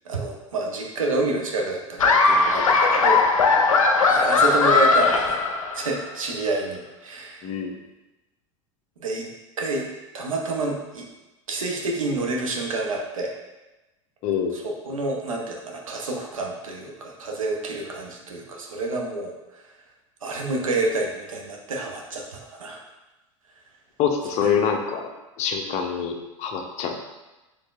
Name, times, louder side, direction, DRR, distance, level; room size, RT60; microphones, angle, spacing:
voice 1, 0.0-3.2 4.0-5.4 5.7-7.5 9.0-9.3 9.6-9.9 10.1-11.1 11.5-13.3 14.5-19.6 20.2-22.8 24.4-24.5, right 2 dB, 85° right, 0 dB, 0.8 m, -28 dB
Laughter, 2.0-6.0, left 4 dB, 85° left, 0.5 m, -19 dB
voice 2, 7.4-7.8 14.2-14.6 24.0-25.1 25.4-27.0, left 7 dB, 45° left, 4 dB, 0.7 m, -25 dB
5.3 x 3.5 x 2.4 m, 1.0 s
hypercardioid pair, 85°, 17 cm